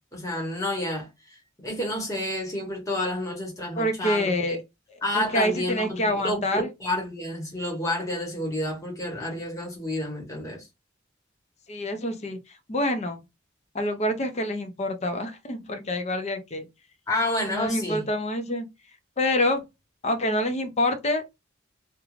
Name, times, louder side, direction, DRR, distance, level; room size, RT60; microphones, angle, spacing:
voice 1, 0.1-1.1 1.6-4.6 5.0-10.7 17.1-18.0, left 1 dB, 15° left, 1.0 m, -29 dB
voice 2, 3.8-4.6 5.1-6.7 11.7-13.2 13.7-16.7 17.5-18.7 19.2-19.6 20.0-21.2, left 1 dB, 35° left, 0.5 m, -26 dB
2.4 x 2.2 x 3.1 m
head